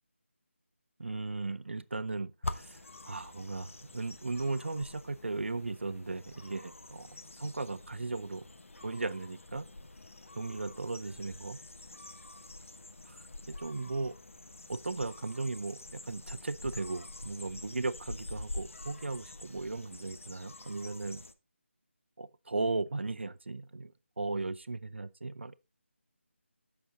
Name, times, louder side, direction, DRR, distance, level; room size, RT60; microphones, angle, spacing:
voice 1, 1.0-8.5 8.8-9.7 10.4-11.6 13.0-14.2 14.7-21.2 22.2-25.5, right 3 dB, 60° right, 0.6 m, -37 dB
sound 1, 2.4-21.3, left 2 dB, 85° left, 1.1 m, -46 dB
8.3 x 6.1 x 4.0 m
figure-of-eight pair, 180°, 7 cm